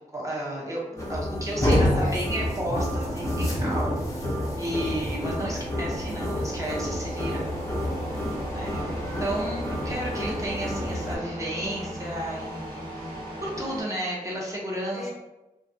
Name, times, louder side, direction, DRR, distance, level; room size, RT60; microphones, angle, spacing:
voice 1, 0.1-0.8 1.1-4.3 4.6-7.5 8.5-15.1, right 1 dB, 20° right, -5 dB, 0.7 m, -33 dB
voice 2, 0.9-2.5 7.4-8.4 14.9-15.1, left 1 dB, 60° left, -3 dB, 0.7 m, -41 dB
sound 1, 1.0-11.2, left 1 dB, 20° left, 0.5 m, -29 dB
Thunder, 2.6-9.1 9.4-10.0 10.4-11.3, right 1 dB, 60° right, 0.8 m, -37 dB
sound 2, 3.1-13.8, right 1 dB, 80° right, 1.5 m, -40 dB
2.3 x 2.1 x 2.6 m, 1.0 s
wide cardioid pair, 80°, 15 cm